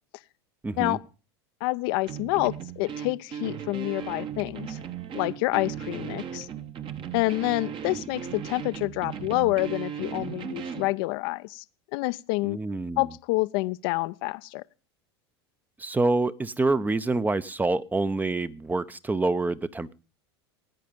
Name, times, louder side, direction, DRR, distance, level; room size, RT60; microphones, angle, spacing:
voice 1, 0.6-1.0 12.4-13.1 15.8-19.9, right 3 dB, 10° right, 0.7 m, -26 dB
voice 2, 1.6-4.8 5.1-6.5 7.1-11.6 11.9-12.6 13.0-14.6, left 21 dB, 60° left, 0.6 m, -28 dB
sound 1, 2.1-10.9, right 8 dB, 35° right, 1.1 m, -37 dB
17.5 x 9.4 x 5.2 m
hypercardioid pair, 90°, 14 cm